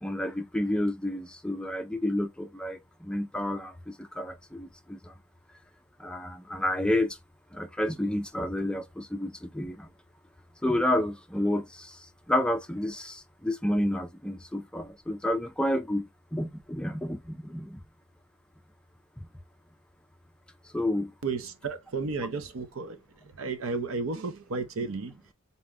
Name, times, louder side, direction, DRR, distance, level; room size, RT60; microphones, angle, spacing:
voice 1, 0.0-5.1 6.0-7.2 7.5-9.9 10.6-17.8 19.2-19.3 20.7-21.1, left 1 dB, 5° left, 0.4 m, -30 dB
voice 2, 21.2-23.0 23.3-25.2, right 4 dB, 75° right, 0.6 m, -33 dB
4.1 x 2.1 x 3.5 m
head